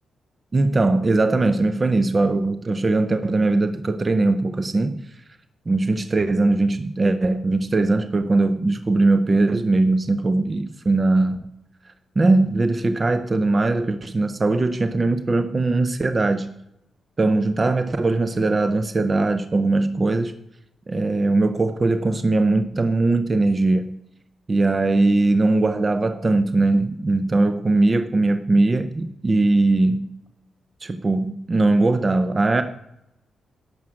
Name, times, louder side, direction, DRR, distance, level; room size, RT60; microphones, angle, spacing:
voice 1, 0.5-5.1 5.7-11.4 12.2-16.5 17.2-20.3 20.9-23.9 24.5-30.0 30.8-32.6, right 2 dB, 25° right, 10 dB, 0.5 m, -20 dB
11.5 x 7.4 x 6.2 m, 0.84 s
wide cardioid pair, 160°, 0 cm